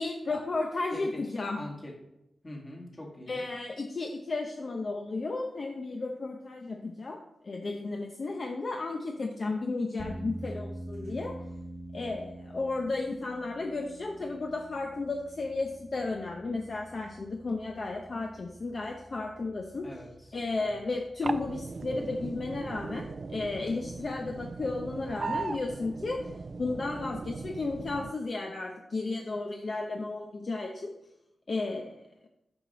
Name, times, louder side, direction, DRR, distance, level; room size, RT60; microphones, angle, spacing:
voice 1, 0.0-1.6 3.3-11.4 11.9-19.9 20.3-26.3 26.6-31.0 31.5-32.0, left 3 dB, 55° left, 2 dB, 0.6 m, -33 dB
voice 2, 1.6-1.9 2.4-3.4 19.8-20.8, left 1 dB, 30° left, 0 dB, 1.9 m, -43 dB
sound 1, 10.0-22.5, right 1 dB, 10° left, 1.4 m, -46 dB
sound 2, 21.2-28.1, right 4 dB, 55° right, 0.3 m, -38 dB
6.8 x 5.6 x 4.2 m, 0.85 s
cardioid pair, 70°, 0 cm